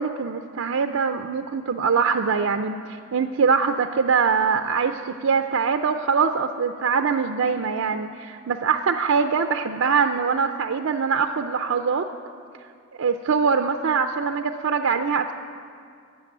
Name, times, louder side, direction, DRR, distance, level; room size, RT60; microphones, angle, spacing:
voice 1, 0.0-12.1 13.0-15.3, right 5 dB, 80° right, 7 dB, 0.5 m, -23 dB
12.5 x 7.8 x 9.0 m, 2.3 s
head